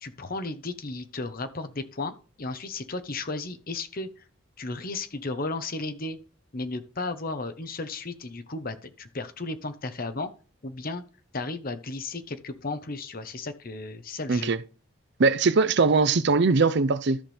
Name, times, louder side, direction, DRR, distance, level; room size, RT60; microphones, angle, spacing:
voice 1, 0.0-4.2 4.6-6.2 6.5-10.3 10.6-11.0 11.3-14.5, left 3 dB, 40° left, 1.0 m, -34 dB
voice 2, 15.2-17.2, right 4 dB, 50° right, 0.5 m, -21 dB
13.5 x 5.9 x 3.4 m
head